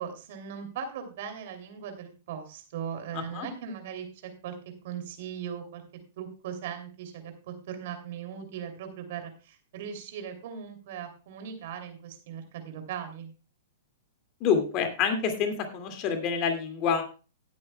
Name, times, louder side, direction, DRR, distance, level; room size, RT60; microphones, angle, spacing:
voice 1, 0.0-4.1 4.4-4.5 4.8-5.8 6.2-13.3, right 8 dB, 60° right, 6 dB, 2.8 m, -39 dB
voice 2, 3.1-3.5 14.4-17.0, left 6 dB, 40° left, 6 dB, 2.2 m, -27 dB
17.5 x 8.5 x 2.3 m, 0.33 s
hypercardioid pair, 115°, 0 cm